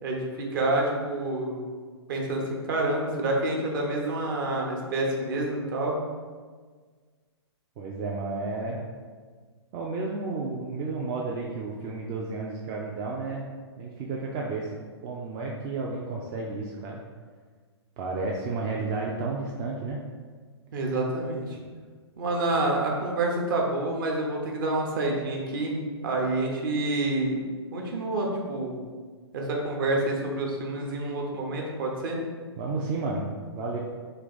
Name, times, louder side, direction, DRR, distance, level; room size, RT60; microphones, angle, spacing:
voice 1, 0.0-1.6 2.1-6.0 20.7-21.6 22.2-27.4 27.7-28.8 29.3-32.2, right 2 dB, 50° right, 0 dB, 0.9 m, -28 dB
voice 2, 7.8-8.8 9.7-13.5 13.8-14.7 15.0-17.0 18.0-20.0 32.6-33.8, right 3 dB, 25° right, -2 dB, 0.4 m, -32 dB
3.3 x 2.8 x 3.9 m, 1.5 s
figure-of-eight pair, 115°, 14 cm